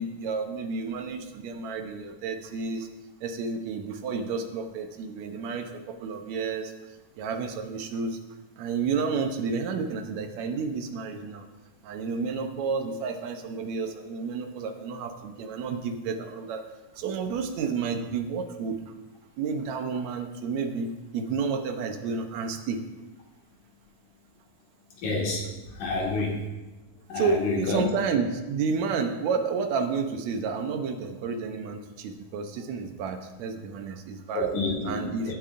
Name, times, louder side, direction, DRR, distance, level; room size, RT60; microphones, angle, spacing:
voice 1, 0.0-2.9 3.2-6.7 7.2-8.2 8.6-11.5 11.8-16.6 16.9-18.9 19.4-22.8 27.1-34.5 34.8-35.4, right 5 dB, 70° right, 6 dB, 1.8 m, -31 dB
voice 2, 25.0-25.4 25.8-26.4 27.1-27.8 34.3-35.0 35.3-35.4, left 2 dB, 65° left, -2 dB, 3.3 m, -28 dB
17.0 x 8.6 x 2.5 m, 1.1 s
omnidirectional pair, 3.9 m